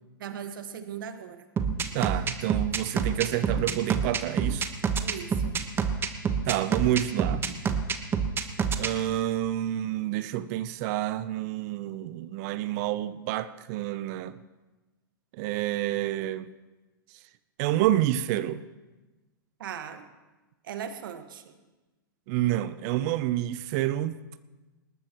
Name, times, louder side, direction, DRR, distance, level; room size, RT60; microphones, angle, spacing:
voice 1, 0.2-1.4 5.0-5.6 19.6-20.1 20.6-21.6, right 8 dB, 70° right, 1.6 m, -38 dB
sound 1, 1.6-8.9, right 6 dB, 20° right, 1.2 m, -27 dB
voice 2, 1.9-4.7 6.4-7.5 8.8-14.3 15.3-16.5 17.6-18.6 22.3-24.1, right 13 dB, 50° right, 0.7 m, -28 dB
20.5 x 19.0 x 3.1 m
hypercardioid pair, 115°, 12 cm